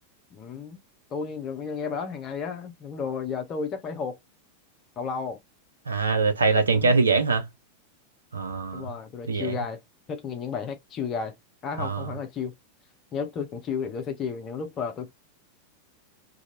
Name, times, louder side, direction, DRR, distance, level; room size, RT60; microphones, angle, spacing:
voice 1, 0.3-0.8 1.1-4.2 5.0-5.4 6.7-7.0 8.7-9.8 10.1-11.3 11.6-12.5 13.1-15.1, left 6 dB, 30° left, 0.6 m, -32 dB
voice 2, 5.9-7.5 8.3-8.9 9.3-9.6 11.8-12.1, right 4 dB, 75° right, 0.6 m, -23 dB
2.6 x 2.5 x 2.7 m
figure-of-eight pair, 90°, 0 cm